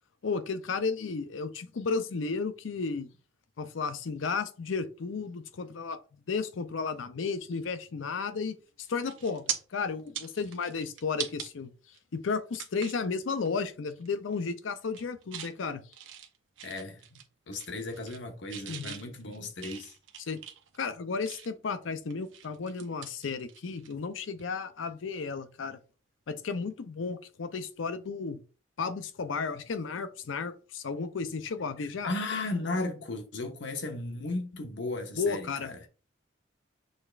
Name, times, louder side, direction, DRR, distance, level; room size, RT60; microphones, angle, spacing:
voice 1, 0.2-3.1 3.6-6.0 6.3-8.6 8.9-9.5 9.7-11.7 12.1-15.8 18.7-19.0 20.3-20.4 20.8-25.8 26.3-28.4 28.8-32.1 35.2-35.7, left 4 dB, 90° left, 0.5 m, -33 dB
sound 1, 8.5-8.7 9.0-9.6 10.0-11.5 11.9-12.0 12.5-13.0 13.5-13.7 14.0-14.4 14.8-15.5 15.9-17.3 17.5-18.2 18.5-21.7 22.1-23.9 24.2-24.4 26.3-26.4, right 9 dB, 80° right, 0.7 m, -41 dB
voice 2, 16.6-17.2 17.5-19.9 31.8-35.9, left 2 dB, 70° left, 0.9 m, -35 dB
6.5 x 3.3 x 2.4 m
head